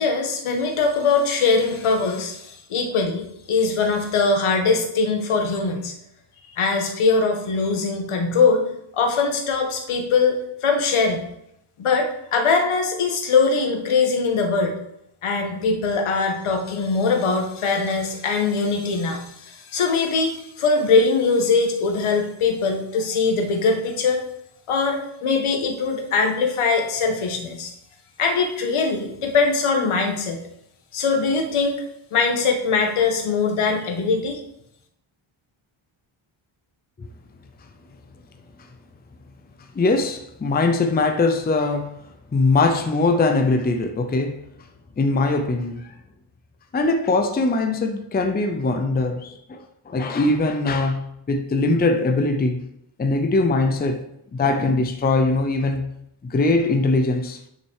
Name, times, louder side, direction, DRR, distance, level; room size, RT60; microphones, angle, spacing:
voice 1, 0.0-5.9 6.6-8.7 8.9-11.2 11.8-14.8 15.2-24.2 24.7-27.7 28.2-30.4 30.9-31.8 32.1-34.4, left 4 dB, 75° left, 1.7 m, -21 dB
voice 2, 39.7-42.0 42.3-44.4 45.0-45.9 46.7-52.7 53.0-54.0 54.3-55.9 56.2-57.4, left 3 dB, 20° left, 0.5 m, -21 dB
9.3 x 6.3 x 4.7 m
wide cardioid pair, 180°, 50 cm